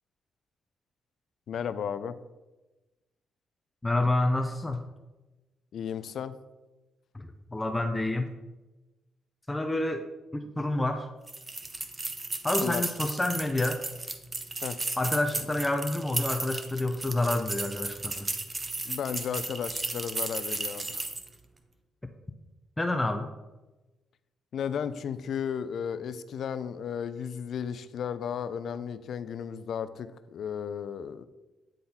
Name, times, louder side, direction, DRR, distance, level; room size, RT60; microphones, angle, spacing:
voice 1, 1.5-2.2 5.7-6.4 12.6-12.8 14.6-14.8 18.9-21.1 24.5-31.2, left 7 dB, 65° left, 13 dB, 0.4 m, -34 dB
voice 2, 3.8-4.8 7.1-8.3 9.5-10.0 10.3-11.1 12.4-13.8 15.0-18.3 22.8-23.3, left 2 dB, 15° left, 5 dB, 0.5 m, -28 dB
sound 1, 11.3-21.3, right 2 dB, 25° right, 0.8 m, -34 dB
9.4 x 3.9 x 4.2 m, 1.1 s
cardioid pair, 90°, 0 cm